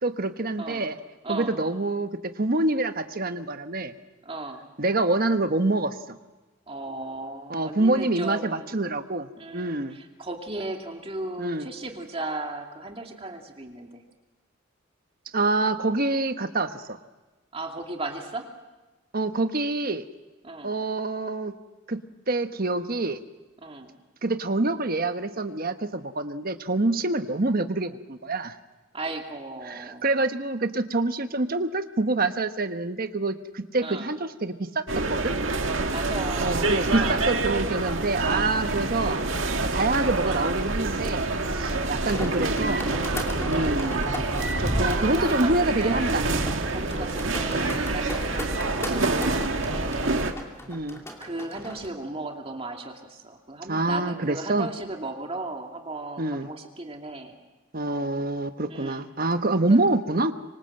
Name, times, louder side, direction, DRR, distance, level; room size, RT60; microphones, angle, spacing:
voice 1, 0.0-1.0 1.3-3.9 4.8-5.9 7.5-10.0 11.4-11.7 15.3-17.0 19.1-20.0 20.6-21.5 21.9-22.0 22.3-23.2 24.2-28.5 29.7-35.3 36.4-39.3 39.6-42.9 43.5-44.1 44.6-46.2 46.9-47.1 50.7-51.0 53.7-54.7 56.2-56.5 57.7-60.3, right 2 dB, 45° right, 9 dB, 1.2 m, -26 dB
voice 2, 1.2-1.6 4.2-4.6 6.7-8.7 9.4-14.0 17.5-18.5 20.4-20.7 23.6-23.9 28.9-30.0 33.8-34.1 35.9-36.7 37.0-37.2 41.6-41.9 44.3-46.3 46.7-50.4 51.2-57.3 58.7-59.1 59.7-59.8, right 2 dB, 30° right, 3 dB, 2.4 m, -36 dB
sound 1, 34.9-50.3, right 2 dB, 70° right, 1.9 m, -27 dB
sound 2, 41.8-51.9, equal, 15° left, 2.8 m, -35 dB
25.5 x 25.0 x 7.8 m, 1.2 s
head